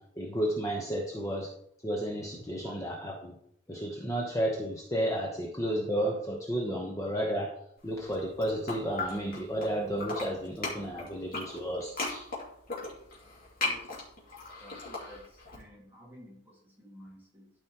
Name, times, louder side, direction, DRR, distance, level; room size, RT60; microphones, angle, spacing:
voice 1, 0.0-1.5 1.8-3.4 3.7-7.6 7.8-12.3, equal, 15° left, -2 dB, 1.0 m, -32 dB
voice 2, 2.4-2.7 13.6-14.1 14.6-17.5, equal, 10° right, -4 dB, 2.1 m, -52 dB
sound 1, 8.0-9.7 9.9-15.6, left 3 dB, 50° left, 2.5 m, -37 dB
12.5 x 5.3 x 3.0 m, 0.71 s
head